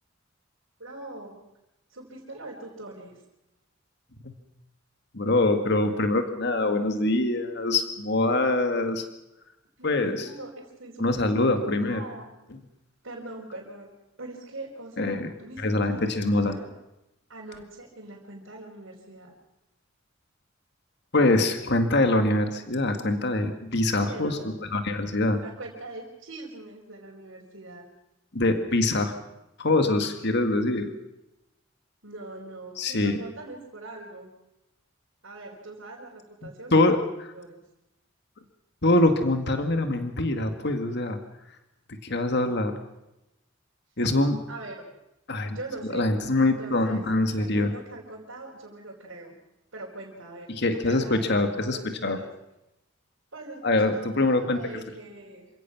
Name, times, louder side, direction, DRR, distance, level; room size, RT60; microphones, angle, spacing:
voice 1, 0.8-1.4 1.9-3.2 9.8-11.5 11.8-12.3 13.0-13.9 14.2-16.7 17.3-19.3 23.9-24.5 25.4-27.9 32.0-34.3 35.2-36.7 37.3-37.6 44.5-44.8 45.5-46.1 46.4-47.0 47.4-49.3 49.7-51.2 51.6-52.3 53.3-55.5, right 2 dB, 85° right, -5 dB, 4.3 m, -42 dB
voice 2, 5.1-9.0 9.8-10.3 11.0-12.0 15.0-15.3 15.6-16.6 21.1-25.4 28.3-29.1 29.6-30.9 32.8-33.2 36.7-37.0 38.8-41.2 42.0-42.8 44.0-44.4 45.3-45.6 45.9-47.7 50.5-52.2 53.6-54.6, left 2 dB, 60° left, 7 dB, 2.0 m, -24 dB
28.0 x 16.5 x 6.1 m, 0.91 s
head